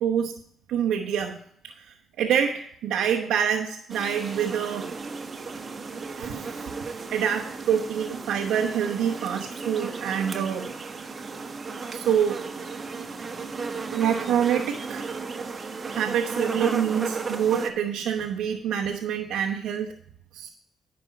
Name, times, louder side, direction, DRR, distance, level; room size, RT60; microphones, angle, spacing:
voice 1, 0.0-0.4 0.7-1.4 1.6-4.9 6.2-6.7 7.1-10.7 11.9-12.4 13.9-15.1 15.9-19.9 20.3-20.5, right 8 dB, 90° right, -2 dB, 1.0 m, -26 dB
sound 1, 3.9-17.7, right 4 dB, 35° right, 1.2 m, -34 dB
10.5 x 5.3 x 8.2 m, 0.66 s
cardioid pair, 90°, 0 cm